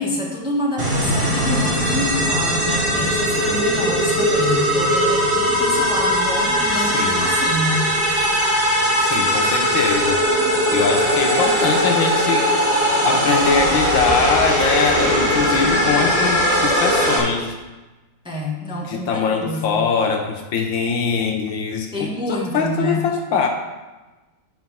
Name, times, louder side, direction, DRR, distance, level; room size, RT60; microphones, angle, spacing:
voice 1, 0.0-7.9 18.2-19.9 21.9-23.0, left 1 dB, 5° right, -3 dB, 1.1 m, -27 dB
sound 1, 0.8-17.2, equal, 30° right, 1.7 m, -19 dB
voice 2, 6.8-7.3 9.0-12.5 13.0-17.6 18.9-23.5, left 5 dB, 70° left, 4 dB, 1.5 m, -22 dB
7.6 x 6.0 x 5.5 m, 1.2 s
omnidirectional pair, 2.3 m